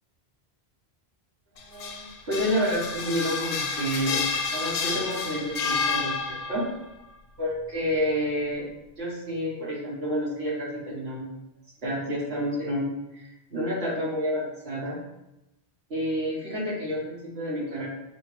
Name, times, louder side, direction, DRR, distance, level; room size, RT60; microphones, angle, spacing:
voice 1, 1.5-4.2 4.5-6.1 6.5-6.6 7.4-8.6 9.0-11.4 11.8-15.0 15.9-17.9, equal, 75° right, -5 dB, 1.6 m, -29 dB
sound 1, 1.6-6.7, left 4 dB, 65° left, 0.7 m, -30 dB
5.0 x 3.1 x 3.2 m, 0.92 s
omnidirectional pair, 1.1 m